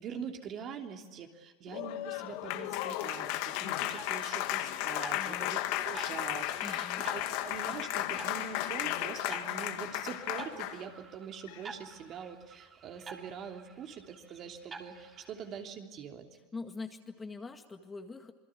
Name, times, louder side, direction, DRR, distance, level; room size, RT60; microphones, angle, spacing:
voice 1, 0.0-16.3, right 7 dB, 40° right, 3 dB, 3.1 m, -44 dB
Applause, 1.7-10.9, left 14 dB, 60° left, 2.0 m, -34 dB
sound 1, 3.7-15.6, right 4 dB, 25° right, 3.0 m, -50 dB
voice 2, 5.1-5.5 6.6-7.1 16.5-18.3, left 3 dB, 15° left, 5 dB, 2.0 m, -43 dB
Meow, 5.4-5.9 6.4-6.5 8.5-9.1 10.7-10.8 11.4-11.7, left 13 dB, 80° left, 2.8 m, -48 dB
27.5 x 21.5 x 9.7 m, 1.4 s
supercardioid pair, 125°, 0 cm